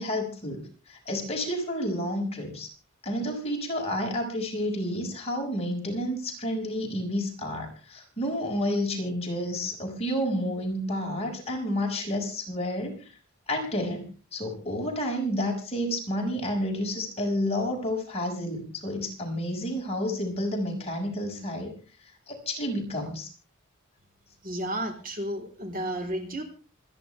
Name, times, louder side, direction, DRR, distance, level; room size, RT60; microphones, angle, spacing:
voice 1, 0.0-2.7 3.0-13.0 13.5-21.7 22.3-23.3, left 1 dB, 30° left, 0 dB, 5.8 m, -30 dB
voice 2, 24.4-26.4, right 1 dB, 40° right, 4 dB, 3.8 m, -32 dB
27.0 x 10.5 x 3.4 m, 0.37 s
head